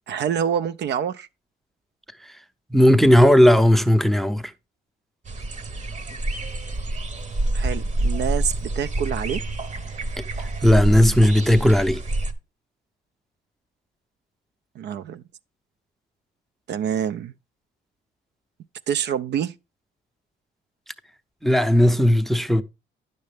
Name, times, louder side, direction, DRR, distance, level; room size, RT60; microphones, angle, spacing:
voice 1, 0.1-1.3 7.5-9.4 14.8-15.2 16.7-17.3 18.9-19.6, right 8 dB, 60° right, 0.4 m, -26 dB
voice 2, 2.7-4.5 10.6-12.0 21.4-22.6, equal, ahead, 0.5 m, -16 dB
sound 1, 5.2-12.3, right 1 dB, 35° right, 0.8 m, -27 dB
9.4 x 6.6 x 3.3 m
cardioid pair, 90°, 20 cm